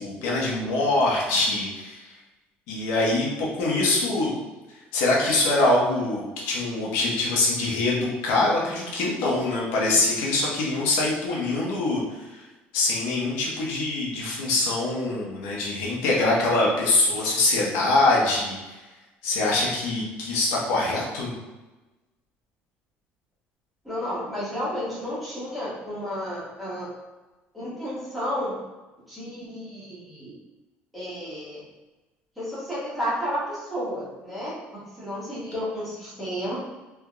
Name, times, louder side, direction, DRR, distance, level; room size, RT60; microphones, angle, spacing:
voice 1, 0.0-2.1 2.7-4.3 4.9-12.4 12.7-18.8 19.2-21.3, left 2 dB, 90° left, -3 dB, 0.9 m, -24 dB
voice 2, 23.8-26.9 27.5-28.5 29.1-30.3 30.9-31.6 32.4-36.6, equal, ahead, -10 dB, 1.2 m, -32 dB
3.4 x 2.8 x 2.3 m, 1.1 s
cardioid pair, 170°, 4 cm